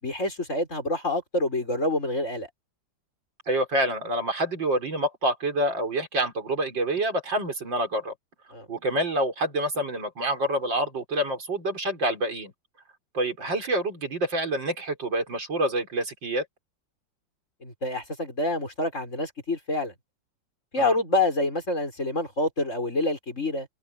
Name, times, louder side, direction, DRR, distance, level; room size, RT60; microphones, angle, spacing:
voice 1, 0.0-2.5 8.5-8.7 17.6-19.9 20.7-23.7, left 2 dB, 40° left, 6.4 m, -27 dB
voice 2, 3.5-8.1 8.7-12.5 13.1-16.5 20.8-21.0, right 1 dB, 80° right, 5.5 m, -27 dB
omnidirectional pair, 2.0 m